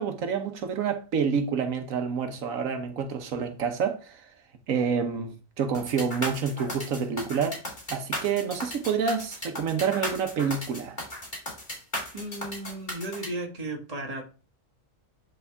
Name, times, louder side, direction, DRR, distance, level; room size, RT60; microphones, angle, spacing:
voice 1, 0.0-4.3 4.7-7.6 7.9-11.0, right 6 dB, 90° right, 1.4 m, -28 dB
sound 1, 5.7-13.3, left 1 dB, 35° left, 3.0 m, -35 dB
voice 2, 12.1-14.2, right 1 dB, 30° right, 1.5 m, -35 dB
9.6 x 3.9 x 3.4 m
omnidirectional pair, 1.4 m